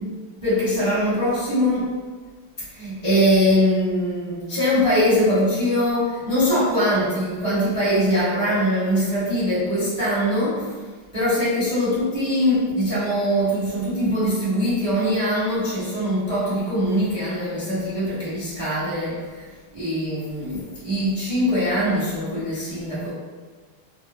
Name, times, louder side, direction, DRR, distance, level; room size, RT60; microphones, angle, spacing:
voice 1, 0.4-1.9 2.7-10.6 11.1-19.5 19.7-23.1, equal, 15° right, -12 dB, 0.8 m, -22 dB
3.5 x 2.0 x 2.6 m, 1.4 s
omnidirectional pair, 2.4 m